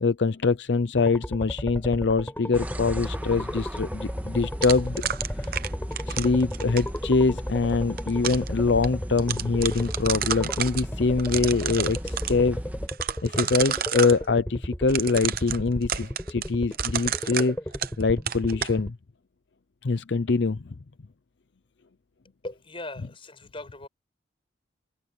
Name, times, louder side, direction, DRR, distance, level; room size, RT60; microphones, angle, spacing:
voice 1, 0.0-5.0 5.4-5.6 6.1-12.6 13.2-17.6 18.0-19.0 19.8-20.6, left 4 dB, 65° left, 0.6 m, -24 dB
sound 1, 1.0-18.9, equal, 10° left, 5.4 m, -35 dB
sound 2, 2.5-12.9, equal, 10° right, 1.9 m, -35 dB
sound 3, 4.6-7.0 7.7-8.5 8.8-8.9 9.2-10.8 11.2-12.3 12.9-14.2 14.9-18.0 18.3-18.7, right 10 dB, 50° right, 0.8 m, -30 dB
voice 2, 22.4-23.9, left 2 dB, 30° left, 6.0 m, -39 dB
head